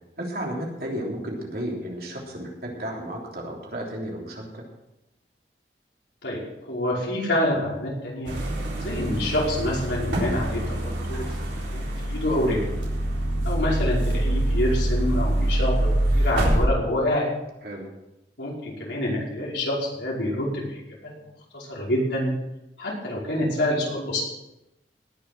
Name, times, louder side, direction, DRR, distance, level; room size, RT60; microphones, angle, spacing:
voice 1, 0.2-4.6 17.6-17.9, right 1 dB, 55° right, -1 dB, 3.4 m, -33 dB
voice 2, 6.7-8.3 8.8-12.6 13.4-15.9 16.1-17.2 18.4-20.8 21.5-22.3 22.8-24.2, left 1 dB, 85° left, -4 dB, 5.3 m, -27 dB
sound 1, 8.3-16.7, right 1 dB, 90° right, 3.9 m, -25 dB
18.5 x 6.9 x 6.0 m, 0.91 s
head